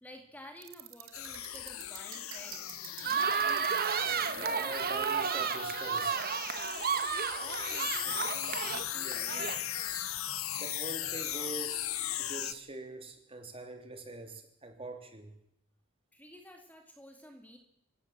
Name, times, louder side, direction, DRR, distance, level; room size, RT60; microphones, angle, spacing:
voice 1, 0.0-2.7 7.4-9.6 16.1-17.6, equal, 10° left, 4 dB, 2.3 m, -51 dB
sound 1, 0.6-7.4, right 10 dB, 80° right, 2.7 m, -49 dB
sound 2, 1.1-12.5, left 12 dB, 85° left, 1.2 m, -38 dB
sound 3, 3.0-9.9, right 6 dB, 45° right, 1.5 m, -32 dB
voice 2, 4.3-6.2 10.6-11.8 12.2-15.3, right 2 dB, 25° right, 5 dB, 3.4 m, -43 dB
27.5 x 16.5 x 7.5 m, 0.75 s
head